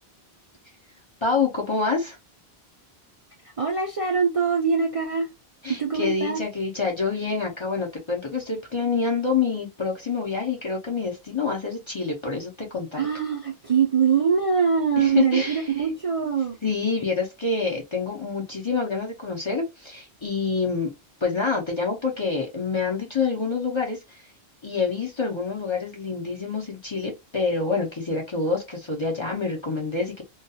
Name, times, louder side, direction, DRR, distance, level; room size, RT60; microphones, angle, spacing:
voice 1, 1.2-2.2 5.6-13.0 15.0-15.6 16.6-20.9 21.2-24.0 24.6-30.2, left 4 dB, 35° left, 0.6 m, -27 dB
voice 2, 3.6-5.3 5.7-6.4 13.0-16.6, right 6 dB, 45° right, 0.5 m, -23 dB
2.3 x 2.3 x 2.6 m
omnidirectional pair, 1.1 m